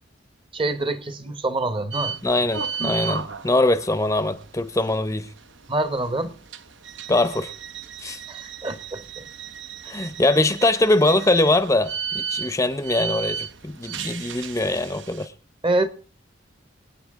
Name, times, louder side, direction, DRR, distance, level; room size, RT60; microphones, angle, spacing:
voice 1, 0.5-2.2 5.7-6.4 8.3-9.3 15.6-15.9, right 2 dB, 30° right, 0.9 m, -26 dB
sound 1, 1.9-15.3, right 7 dB, 75° right, 0.8 m, -35 dB
voice 2, 2.2-5.3 7.1-7.5 8.0-8.2 9.9-15.3, left 2 dB, 15° left, 0.6 m, -22 dB
27.0 x 9.1 x 3.6 m
head